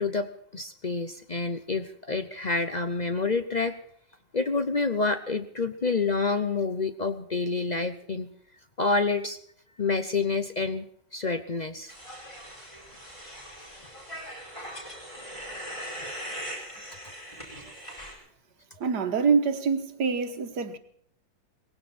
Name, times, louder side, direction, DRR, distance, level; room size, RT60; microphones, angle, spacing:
voice 1, 0.0-3.8 4.3-8.3 8.8-9.4 9.8-11.9, left 4 dB, 55° left, 0.4 m, -28 dB
sound 1, 11.9-18.1, equal, 15° left, 5.2 m, -40 dB
voice 2, 18.8-20.8, right 5 dB, 65° right, 1.8 m, -26 dB
19.5 x 16.5 x 4.3 m
omnidirectional pair, 2.0 m